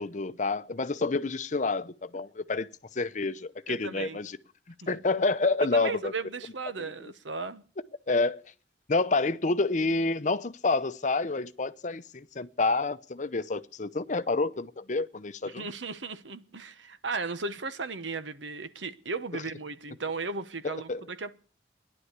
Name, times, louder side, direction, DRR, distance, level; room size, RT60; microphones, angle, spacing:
voice 1, 0.0-4.4 4.9-6.1 7.0-7.1 8.1-8.4 8.9-15.7 19.3-19.4 20.6-21.0, left 3 dB, 40° left, 0.7 m, -28 dB
voice 2, 3.7-4.2 5.6-7.6 15.4-21.3, right 4 dB, 90° right, 1.2 m, -36 dB
16.0 x 11.0 x 8.2 m
head